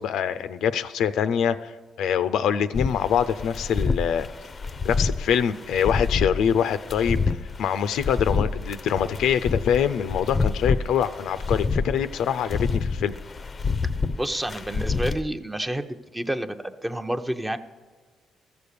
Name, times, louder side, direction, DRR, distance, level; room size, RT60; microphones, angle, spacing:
voice 1, 0.0-1.7 2.0-4.3 4.8-7.2 7.6-13.1, left 8 dB, 80° left, 12 dB, 0.5 m, -24 dB
sound 1, 2.7-15.2, left 4 dB, 35° left, 0.5 m, -28 dB
voice 2, 14.2-17.6, right 1 dB, 10° right, 8 dB, 0.7 m, -29 dB
14.0 x 7.0 x 6.6 m, 1.4 s
cardioid pair, 90°, 0 cm